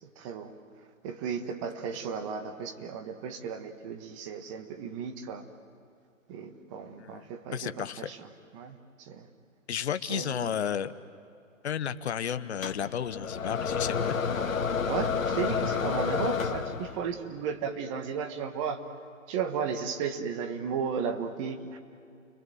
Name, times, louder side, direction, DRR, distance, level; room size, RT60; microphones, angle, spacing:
voice 1, 0.2-0.6 1.0-5.4 6.3-9.3 10.0-10.5 14.9-18.8 19.3-21.8, right 6 dB, 25° right, 7 dB, 1.4 m, -35 dB
voice 2, 7.5-8.1 9.7-10.9 11.6-14.2, left 8 dB, 55° left, 11 dB, 1.0 m, -32 dB
sound 1, 12.6-17.1, left 6 dB, 80° left, 1.9 m, -30 dB
30.0 x 22.5 x 7.9 m, 2.5 s
hypercardioid pair, 145°, 40 cm